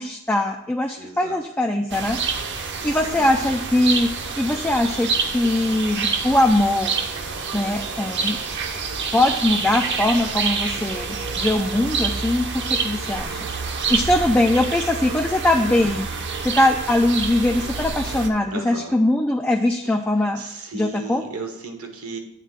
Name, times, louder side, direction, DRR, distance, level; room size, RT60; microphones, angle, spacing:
voice 1, 0.0-2.2 2.8-4.1 4.4-6.9 7.5-8.4 9.1-12.5 12.8-16.1 16.4-20.4 20.7-21.2, left 1 dB, 10° left, 2 dB, 0.3 m, -21 dB
voice 2, 0.9-1.4 2.5-3.7 14.3-14.4 18.5-19.0 19.8-20.0 20.4-22.2, right 2 dB, 75° right, 4 dB, 1.2 m, -36 dB
sound 1, 1.9-18.3, right 5 dB, 50° right, 0.8 m, -27 dB
9.1 x 3.7 x 6.1 m, 0.85 s
head